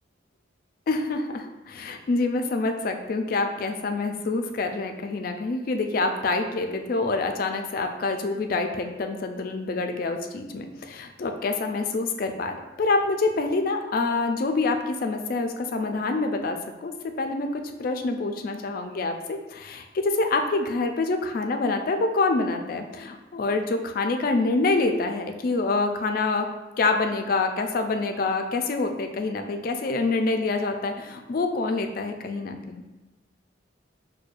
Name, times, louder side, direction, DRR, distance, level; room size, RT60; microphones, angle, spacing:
voice 1, 0.9-26.5 26.8-32.8, left 3 dB, 50° left, 5 dB, 0.3 m, -26 dB
6.3 x 2.2 x 2.4 m, 1.1 s
head